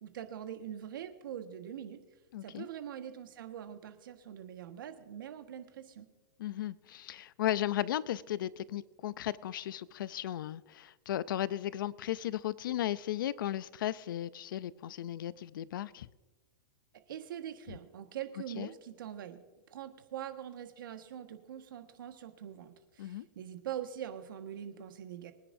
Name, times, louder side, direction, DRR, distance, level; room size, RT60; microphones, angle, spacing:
voice 1, 0.0-2.0 2.4-6.1 17.1-19.4 19.7-25.3, right 10 dB, 80° right, 1.5 m, -43 dB
voice 2, 2.3-2.7 6.4-16.1 18.6-18.7 23.0-23.3, left 12 dB, 80° left, 0.5 m, -35 dB
24.0 x 10.0 x 2.7 m
supercardioid pair, 160°, 11 cm